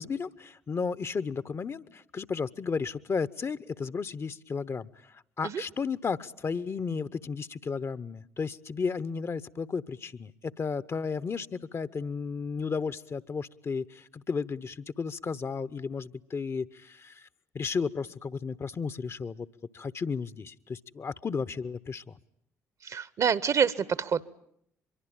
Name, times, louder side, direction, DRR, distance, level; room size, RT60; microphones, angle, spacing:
voice 1, 0.0-17.3 17.5-19.5 19.7-22.2, left 5 dB, 35° left, 15 dB, 1.0 m, -33 dB
voice 2, 22.8-24.3, right 7 dB, 45° right, 18 dB, 1.1 m, -27 dB
24.5 x 23.0 x 8.9 m, 0.70 s
hypercardioid pair, 50°, 7 cm